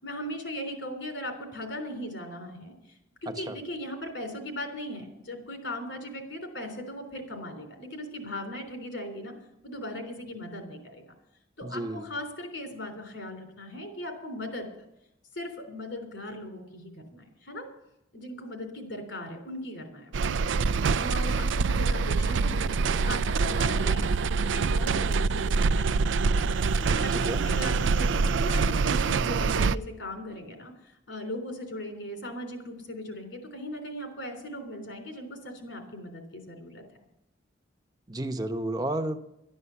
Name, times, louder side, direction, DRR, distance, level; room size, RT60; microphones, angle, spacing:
voice 1, 0.0-9.3 9.6-11.1 11.6-14.9 15.3-17.7 18.1-20.2 20.9-36.8, left 1 dB, 75° left, 4 dB, 3.4 m, -38 dB
voice 2, 11.6-12.0 27.1-27.4 38.1-39.2, right 1 dB, 20° right, 7 dB, 0.8 m, -31 dB
sound 1, 20.1-29.8, right 4 dB, 80° right, 0.4 m, -25 dB
12.0 x 11.0 x 7.0 m, 0.86 s
head